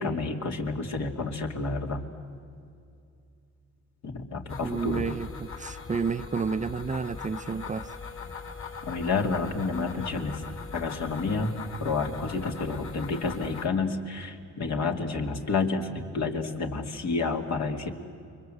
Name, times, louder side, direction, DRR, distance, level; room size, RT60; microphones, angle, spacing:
voice 1, 0.0-2.1 4.0-5.1 8.8-10.4 10.7-11.5 11.8-17.9, left 4 dB, 65° left, 3.0 m, -30 dB
sound 1, 4.5-13.7, left 5 dB, 45° left, 4.0 m, -40 dB
voice 2, 4.6-7.9, right 5 dB, 25° right, 0.6 m, -31 dB
29.5 x 24.0 x 8.1 m
cardioid pair, 90°, 30 cm